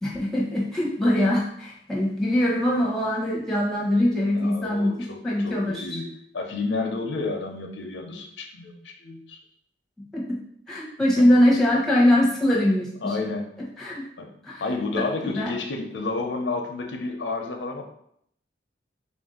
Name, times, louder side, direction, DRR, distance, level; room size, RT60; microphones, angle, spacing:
voice 1, 0.0-4.9 5.2-6.0 10.1-10.4 10.7-13.2 13.8-14.0 14.4-14.6 15.3-15.5, left 1 dB, ahead, -5 dB, 0.8 m, -22 dB
voice 2, 4.3-6.1 6.3-9.4 11.2-11.3 13.0-13.5 14.2-14.3 14.6-17.8, left 3 dB, 80° left, 3 dB, 0.6 m, -30 dB
3.6 x 2.6 x 3.7 m, 0.69 s
head